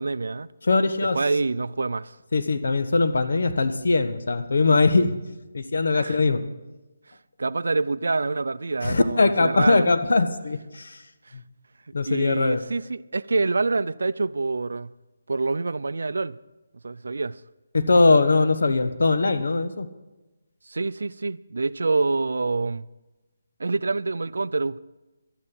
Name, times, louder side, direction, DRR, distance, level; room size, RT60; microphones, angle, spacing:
voice 1, 0.0-0.5 1.1-2.2 5.9-6.2 7.1-9.9 11.3-11.4 12.0-14.9 15.3-16.4 16.8-17.4 20.7-22.9 23.6-24.8, right 3 dB, 85° right, 0.4 m, -26 dB
voice 2, 0.6-1.2 2.3-5.1 5.5-6.4 8.8-11.0 11.9-12.6 17.7-19.9, left 3 dB, 75° left, 1.2 m, -21 dB
13.0 x 11.5 x 6.0 m
hypercardioid pair, 175°, 0 cm